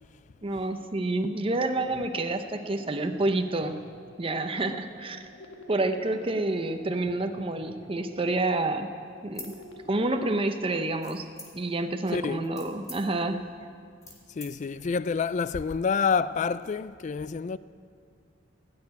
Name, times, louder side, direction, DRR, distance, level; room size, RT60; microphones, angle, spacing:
voice 1, 0.4-3.8 4.2-5.2 5.7-8.9 9.2-9.5 9.9-11.2 11.5-13.4, right 2 dB, 30° right, 0.7 m, -28 dB
sound 1, 2.4-10.4, equal, 75° left, 1.4 m, -49 dB
sound 2, 9.3-10.3 11.0-11.8 12.3-14.5, left 2 dB, 15° left, 2.3 m, -46 dB
voice 2, 12.1-12.5 14.3-17.6, left 5 dB, 40° left, 0.3 m, -28 dB
16.5 x 6.9 x 9.5 m
head